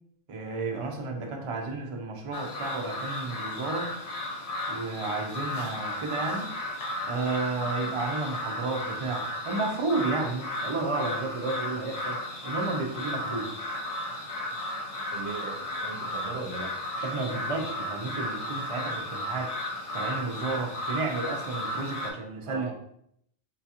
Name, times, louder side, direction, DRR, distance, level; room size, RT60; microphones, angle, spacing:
voice 1, 0.3-3.9 4.7-6.5 7.0-13.6 17.0-19.5 19.9-22.7, right 3 dB, 55° right, 2 dB, 0.3 m, -32 dB
sound 1, 2.3-22.1, left 1 dB, 50° left, 0.4 m, -34 dB
voice 2, 15.1-16.8 22.5-22.7, right 4 dB, 75° right, 2 dB, 0.9 m, -38 dB
3.8 x 2.3 x 2.8 m, 0.72 s
omnidirectional pair, 1.2 m